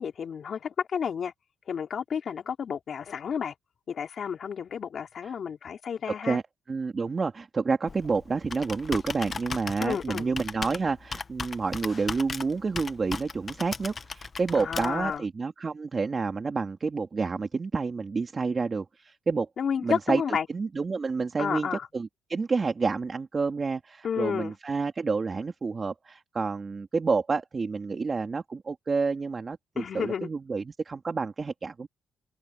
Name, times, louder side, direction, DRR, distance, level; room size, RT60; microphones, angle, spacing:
voice 1, 0.0-1.3 1.7-3.5 3.9-6.4 9.8-10.3 14.5-15.2 19.6-20.5 21.4-21.9 24.0-24.5 29.8-30.3, left 7 dB, 55° left, 4.1 m, -31 dB
voice 2, 6.7-19.5 19.8-31.9, right 4 dB, 35° right, 3.6 m, -29 dB
Computer keyboard, 7.9-15.2, left 5 dB, 35° left, 1.2 m, -37 dB
cardioid pair, 90°, 0 cm